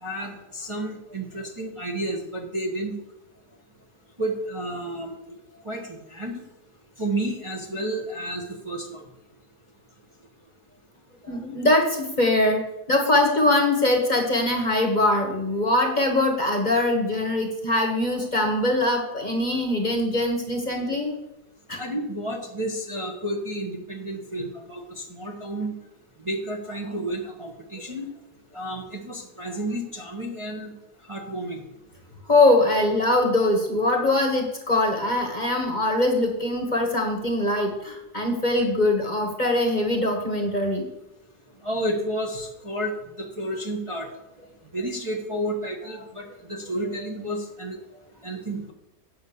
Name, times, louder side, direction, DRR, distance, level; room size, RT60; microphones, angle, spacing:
voice 1, 0.0-3.0 4.2-5.1 5.6-6.4 7.0-9.0 21.8-25.8 26.2-28.1 28.5-30.7 31.1-31.7 41.6-44.1 44.7-47.8 48.2-48.7, right 1 dB, 20° right, -1 dB, 1.0 m, -31 dB
voice 2, 11.2-12.6 12.9-21.2 21.7-21.8 32.3-40.9, left 1 dB, 30° left, 2 dB, 1.3 m, -22 dB
8.6 x 5.5 x 6.9 m, 0.90 s
omnidirectional pair, 1.6 m